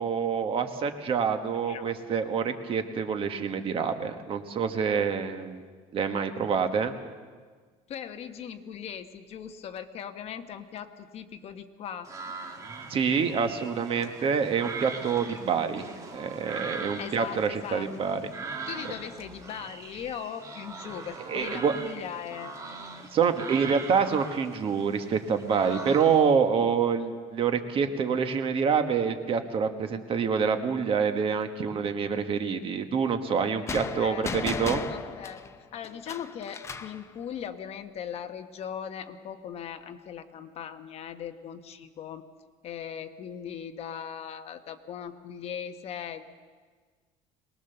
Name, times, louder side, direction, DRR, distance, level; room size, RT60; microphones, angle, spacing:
voice 1, 0.0-5.6 5.9-7.0 12.9-15.8 16.1-18.2 21.3-21.8 23.1-34.8, right 6 dB, 35° right, 7 dB, 1.4 m, -27 dB
voice 2, 1.6-1.9 7.9-12.1 17.0-18.2 18.7-22.5 33.7-34.5 34.9-35.4 35.7-42.2 42.6-46.3, left 8 dB, 40° left, 8 dB, 1.0 m, -39 dB
sound 1, 12.1-26.3, right 3 dB, 20° right, 2.1 m, -41 dB
sound 2, 33.7-37.0, left 5 dB, 15° left, 0.7 m, -35 dB
23.0 x 20.0 x 6.9 m, 1.5 s
cardioid pair, 160°, 16 cm